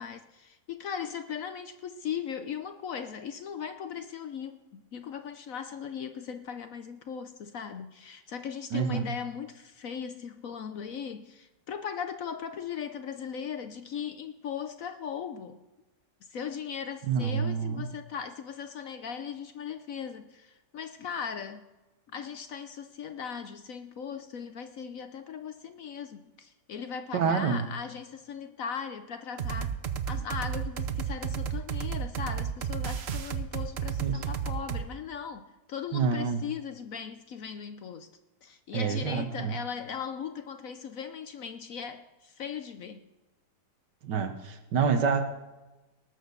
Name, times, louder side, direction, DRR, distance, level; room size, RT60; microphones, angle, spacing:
voice 1, 0.0-15.6 16.3-21.7 22.1-29.8 30.1-38.1 38.4-43.0, left 7 dB, 60° left, 1.0 m, -38 dB
voice 2, 8.7-9.1 17.1-17.8 27.1-27.6 34.0-34.2 35.9-36.4 38.7-39.5 44.0-45.3, right 6 dB, 75° right, 1.8 m, -27 dB
sound 1, 29.4-34.9, right 7 dB, 55° right, 0.7 m, -32 dB
18.5 x 6.4 x 6.9 m
omnidirectional pair, 1.9 m